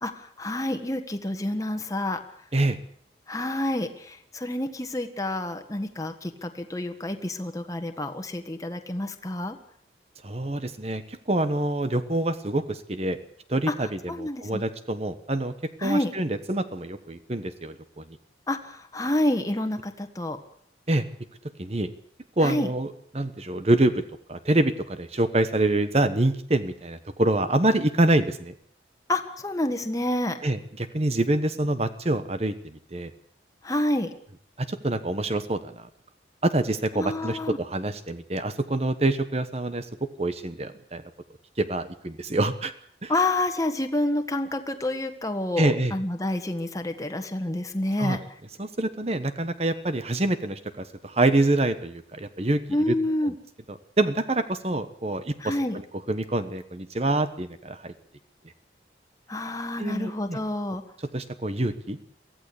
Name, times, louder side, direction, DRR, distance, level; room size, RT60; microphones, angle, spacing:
voice 1, 0.0-2.2 3.3-9.6 13.7-13.8 14.1-14.6 15.8-16.1 18.5-20.4 22.4-22.7 29.1-30.4 33.6-34.1 36.9-37.6 43.1-48.2 52.7-53.3 55.4-55.8 59.3-60.8, left 1 dB, 20° left, 5 dB, 1.5 m, -28 dB
voice 2, 10.2-13.2 13.5-15.5 15.8-18.0 20.9-21.1 21.6-21.9 22.4-24.0 24.3-28.5 30.4-33.1 34.6-35.9 36.4-41.0 41.6-42.7 43.0-43.1 45.6-45.9 48.0-48.2 48.6-52.9 53.2-53.3 53.7-55.5 56.1-57.9 59.8-60.4 61.1-62.0, right 2 dB, 35° right, 11 dB, 1.2 m, -26 dB
23.5 x 15.5 x 8.4 m, 0.62 s
head